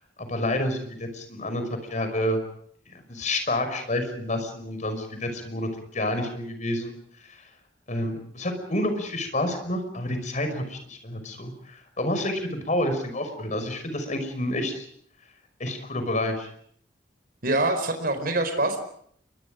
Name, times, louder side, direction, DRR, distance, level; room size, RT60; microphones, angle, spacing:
voice 1, 0.2-1.6 1.9-2.4 3.1-6.9 7.3-7.4 7.9-14.9 15.6-16.5, left 1 dB, 45° left, 7 dB, 5.6 m, -29 dB
voice 2, 17.4-18.8, right 2 dB, 55° right, 6 dB, 4.7 m, -24 dB
29.5 x 24.0 x 5.2 m, 0.64 s
head